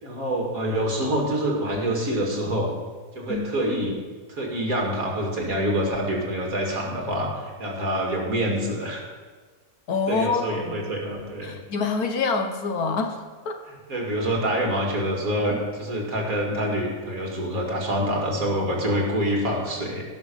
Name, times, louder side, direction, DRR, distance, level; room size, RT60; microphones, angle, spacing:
voice 1, 0.0-2.7 3.2-3.9 4.3-9.0 10.1-11.6 13.9-20.0, equal, 65° right, 0 dB, 2.6 m, -26 dB
voice 2, 3.3-3.7 9.9-10.9 11.4-13.2 13.4-13.6, left 4 dB, 75° left, 5 dB, 1.6 m, -26 dB
17.5 x 6.1 x 5.4 m, 1.4 s
omnidirectional pair, 1.6 m